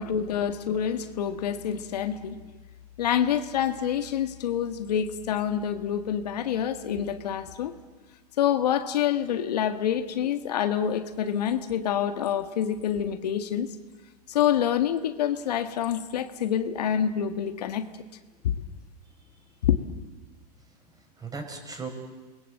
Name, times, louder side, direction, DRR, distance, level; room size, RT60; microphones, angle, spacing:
voice 1, 0.0-2.4 3.0-7.7 8.4-13.7 14.3-17.9 19.6-19.8, left 9 dB, 75° left, 8 dB, 1.8 m, -27 dB
voice 2, 20.7-21.9, right 4 dB, 20° right, 4 dB, 6.0 m, -39 dB
29.0 x 21.5 x 7.9 m, 1.4 s
hypercardioid pair, 110°, 21 cm